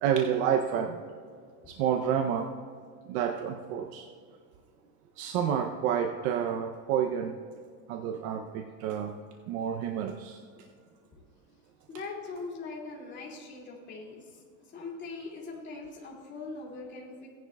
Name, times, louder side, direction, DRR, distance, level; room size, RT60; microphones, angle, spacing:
voice 1, 0.0-1.0 1.7-2.5 3.1-4.0 5.2-7.3 7.9-9.1 9.5-10.4, right 8 dB, 70° right, 5 dB, 0.8 m, -29 dB
voice 2, 11.9-14.3 14.7-17.3, left 3 dB, 25° left, -3 dB, 2.5 m, -41 dB
17.0 x 10.5 x 2.3 m, 2.1 s
cardioid pair, 155°, 43 cm